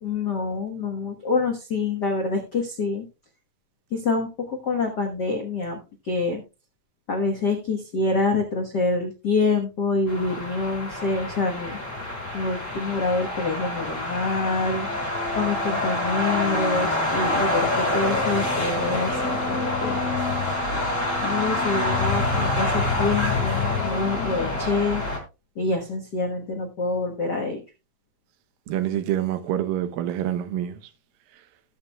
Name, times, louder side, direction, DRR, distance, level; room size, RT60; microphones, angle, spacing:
voice 1, 0.0-3.0 3.9-5.8 6.0-6.4 7.1-11.8 12.3-14.9 15.3-20.0 21.2-25.0 25.6-27.6, left 3 dB, 75° left, 0.9 m, -26 dB
sound 1, 10.1-25.2, left 2 dB, 20° left, 4.0 m, -26 dB
voice 2, 28.7-30.8, right 11 dB, 85° right, 2.6 m, -26 dB
19.5 x 6.7 x 2.3 m
omnidirectional pair, 4.0 m